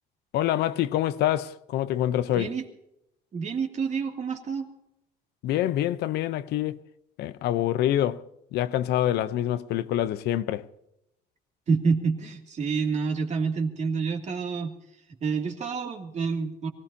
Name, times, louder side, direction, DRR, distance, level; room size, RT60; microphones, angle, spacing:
voice 1, 0.3-2.5 5.4-6.8 7.2-8.2 8.5-10.7, left 12 dB, 80° left, 0.8 m, -26 dB
voice 2, 2.3-2.7 3.3-4.7 11.7-14.7 15.2-16.7, right 5 dB, 45° right, 2.5 m, -28 dB
23.5 x 17.5 x 2.8 m
cardioid pair, 110°, 17 cm